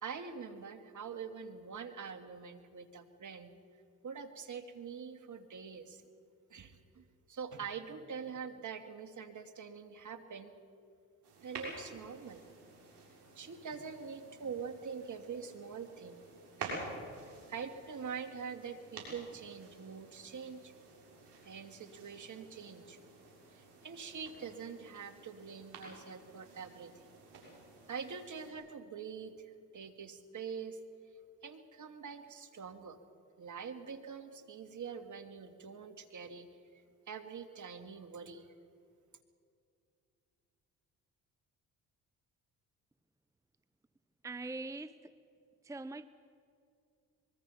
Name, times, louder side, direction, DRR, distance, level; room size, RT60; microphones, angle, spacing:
voice 1, 0.0-3.5 4.0-6.0 6.5-10.5 11.4-12.4 13.4-16.2 16.6-16.9 17.5-20.7 21.4-23.0 23.5-27.2 27.9-30.8 31.4-33.0 33.4-38.5, right 6 dB, 45° right, 8 dB, 2.1 m, -45 dB
sound 1, 11.2-28.5, right 3 dB, 75° right, 6.4 m, -50 dB
voice 2, 44.2-45.0 45.6-46.1, right 3 dB, 10° right, 13 dB, 0.7 m, -42 dB
25.0 x 22.0 x 5.7 m, 2.4 s
supercardioid pair, 60°, 40 cm